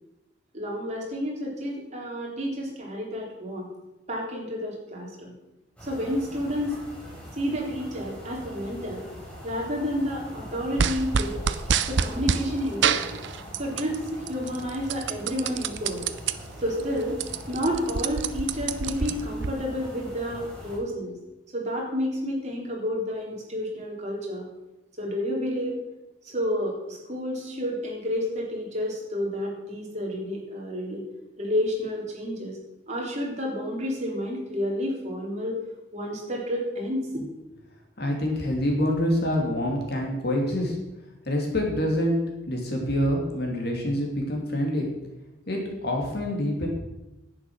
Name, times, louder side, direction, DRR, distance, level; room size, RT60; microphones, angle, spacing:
voice 1, 0.5-3.7 4.1-5.4 5.8-6.8 7.3-9.0 9.4-11.4 11.8-13.1 13.6-16.1 16.6-17.2 17.5-21.1 21.5-24.5 25.0-25.8 26.2-31.0 31.4-32.6 32.9-35.6 35.9-37.2, equal, 35° right, -2 dB, 3.4 m, -30 dB
sound 1, 5.8-20.8, equal, 5° left, 4.6 m, -42 dB
sound 2, 10.8-12.4 12.8-14.0 14.3-16.3 16.8-16.9 17.1-19.5, right 6 dB, 65° right, 0.6 m, -26 dB
voice 2, 38.0-40.7 41.2-42.2 42.4-44.9 45.5-46.7, left 1 dB, 55° left, 0 dB, 2.9 m, -26 dB
11.0 x 8.6 x 6.3 m, 0.97 s
head